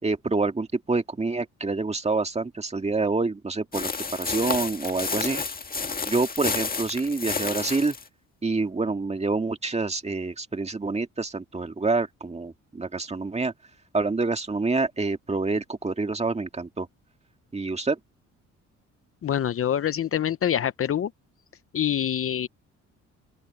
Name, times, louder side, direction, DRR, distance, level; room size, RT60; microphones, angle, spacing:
voice 1, 0.0-5.4 6.1-8.0 8.4-13.5 13.9-16.9 17.5-18.0, right 3 dB, 20° right, 2.0 m, -27 dB
sound 1, 3.7-8.1, left 4 dB, 30° left, 1.9 m, -30 dB
voice 2, 19.2-21.1 21.7-22.5, left 9 dB, 45° left, 0.8 m, -25 dB
open air
cardioid pair, 90°, 30 cm